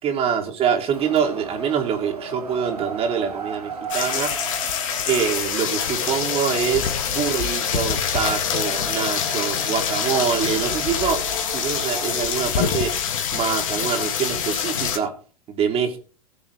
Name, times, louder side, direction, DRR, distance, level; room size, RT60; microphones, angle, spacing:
voice 1, 0.0-4.3 5.1-11.2 11.5-12.9 13.3-15.1 15.5-16.0, right 7 dB, 30° right, 4 dB, 3.1 m, -25 dB
Wind, 0.9-12.1, right 5 dB, 80° right, 1.9 m, -36 dB
sound 1, 3.9-15.0, left 8 dB, 60° left, 2.5 m, -25 dB
18.5 x 7.1 x 3.4 m, 0.38 s
figure-of-eight pair, 95°, 20 cm